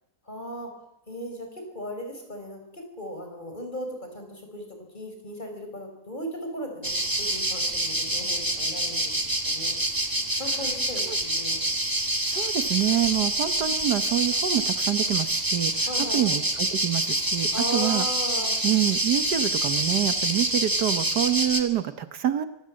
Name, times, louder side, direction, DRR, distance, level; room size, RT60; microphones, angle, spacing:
voice 1, 0.3-0.7 1.1-10.1 10.3-11.7 15.9-16.4 17.5-18.6, equal, 25° left, 3 dB, 5.4 m, -37 dB
sound 1, 6.8-21.6, right 1 dB, 10° right, 1.8 m, -26 dB
voice 2, 12.3-18.1 18.6-22.5, right 11 dB, 75° right, 10 dB, 1.7 m, -27 dB
24.0 x 18.5 x 7.7 m, 0.88 s
omnidirectional pair, 1.8 m